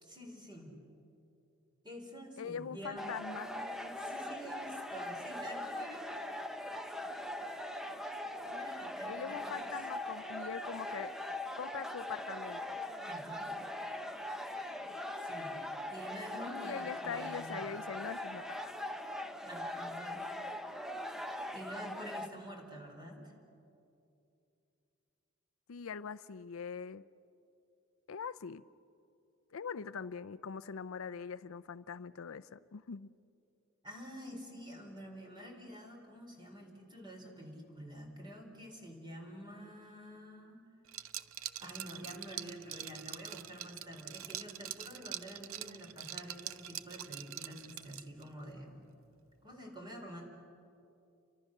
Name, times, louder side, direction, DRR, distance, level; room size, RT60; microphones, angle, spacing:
voice 1, 0.0-0.7 1.8-6.1 8.4-9.7 13.0-13.6 15.2-15.5 15.9-17.6 19.4-20.3 21.5-23.3 33.8-40.6 41.6-48.9 49.4-50.2, equal, 20° right, 2 dB, 4.1 m, -48 dB
voice 2, 2.4-3.5 9.1-11.1 11.6-12.8 16.5-18.7 25.7-27.0 28.1-28.6 29.5-33.1, left 6 dB, 75° left, 13 dB, 0.5 m, -42 dB
sound 1, 3.0-22.3, left 1 dB, ahead, 0.9 m, -41 dB
Liquid, 40.9-48.3, right 12 dB, 70° right, 0.6 m, -44 dB
29.5 x 24.5 x 6.5 m, 2.7 s
head